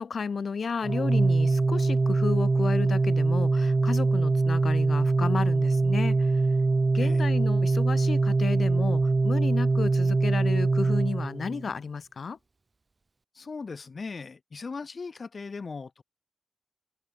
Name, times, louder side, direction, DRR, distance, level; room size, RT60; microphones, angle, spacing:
voice 1, 0.0-6.4 6.9-12.4, left 5 dB, 85° left, 2.1 m, -32 dB
Organ, 0.8-11.7, right 3 dB, 40° right, 0.5 m, -23 dB
voice 2, 13.3-16.0, left 4 dB, 60° left, 3.3 m, -38 dB
wide cardioid pair, 115°, 0 cm